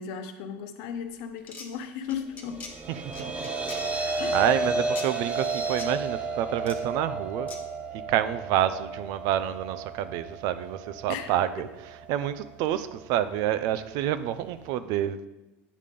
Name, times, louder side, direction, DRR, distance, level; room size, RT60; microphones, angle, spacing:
voice 1, 0.0-2.6 4.2-4.6 11.1-11.7, left 7 dB, 65° left, 1.0 m, -36 dB
sound 1, 1.4-1.7 2.1-2.7 3.1-3.8 5.0-5.1 5.8-5.9 6.6-6.8 7.5-7.6, left 4 dB, 25° left, 1.6 m, -41 dB
sound 2, 2.4-14.7, right 3 dB, 20° right, 1.2 m, -33 dB
voice 2, 2.9-3.5 3.8-7.5 7.9-11.7 12.1-15.2, right 11 dB, 65° right, 0.6 m, -28 dB
9.4 x 3.6 x 6.7 m
supercardioid pair, 115°, 7 cm